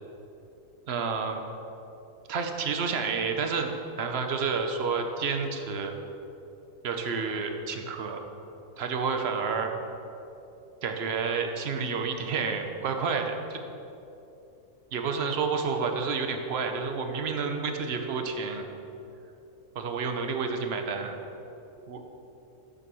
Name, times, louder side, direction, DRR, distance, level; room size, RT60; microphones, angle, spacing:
voice 1, 0.9-1.4 2.3-3.7 4.0-5.9 6.8-8.2 8.8-9.7 10.8-13.6 14.9-18.7 19.7-21.2 21.9-22.1, right 5 dB, 55° right, 5 dB, 0.8 m, -30 dB
6.9 x 5.3 x 6.1 m, 3.0 s
omnidirectional pair, 1.4 m